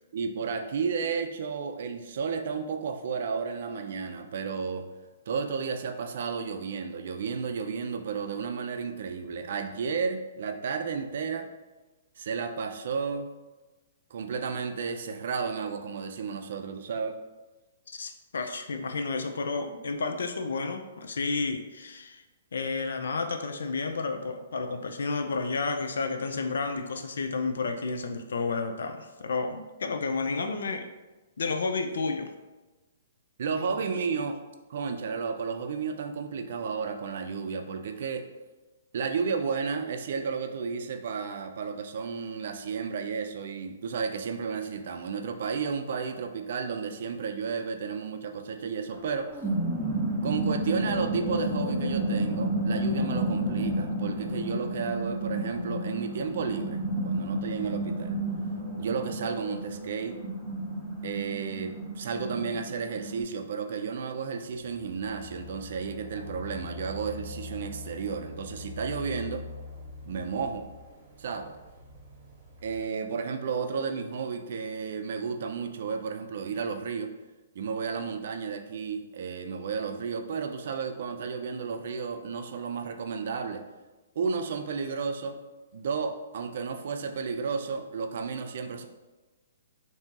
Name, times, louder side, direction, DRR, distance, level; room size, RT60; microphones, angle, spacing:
voice 1, 0.1-4.9 5.3-11.5 12.2-13.4 14.1-17.2 33.4-34.4 34.7-38.3 38.9-49.3 50.2-58.2 58.8-60.2 61.0-69.5 70.1-70.7 71.2-71.5 72.6-77.1 77.5-83.6 84.2-85.4 85.7-88.9, right 5 dB, 60° right, 6 dB, 0.4 m, -32 dB
voice 2, 17.9-22.2 22.5-30.9 31.4-32.3, left 4 dB, 80° left, 6 dB, 0.4 m, -31 dB
sound 1, 48.9-63.2, right 1 dB, ahead, 0.7 m, -31 dB
sound 2, 64.5-72.8, left 3 dB, 35° right, 0.9 m, -44 dB
2.8 x 2.7 x 3.7 m, 1.2 s
hypercardioid pair, 145°, 0 cm